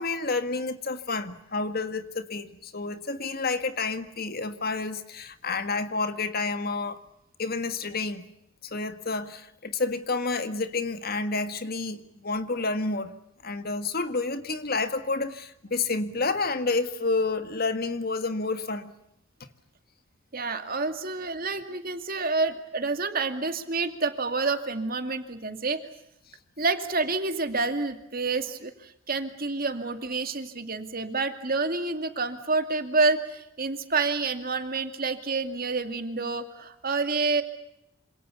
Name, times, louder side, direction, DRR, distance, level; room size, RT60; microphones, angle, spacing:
voice 1, 0.0-7.0 7.4-8.2 8.6-13.1 13.4-18.9, left 3 dB, 45° left, 1.8 m, -29 dB
voice 2, 20.3-25.8 26.6-37.4, right 3 dB, 45° right, 2.4 m, -28 dB
27.0 x 27.0 x 7.0 m
head